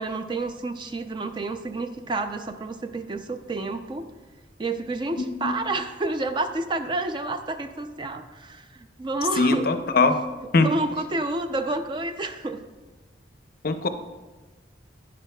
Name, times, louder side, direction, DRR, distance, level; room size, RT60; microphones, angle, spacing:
voice 1, 0.0-4.1 4.6-9.7 10.6-12.6, right 2 dB, 25° right, 8 dB, 0.4 m, -29 dB
voice 2, 5.2-5.5 9.4-10.2 10.5-10.7 13.6-13.9, left 3 dB, 50° left, 8 dB, 0.5 m, -21 dB
10.0 x 9.6 x 2.2 m, 1.3 s
head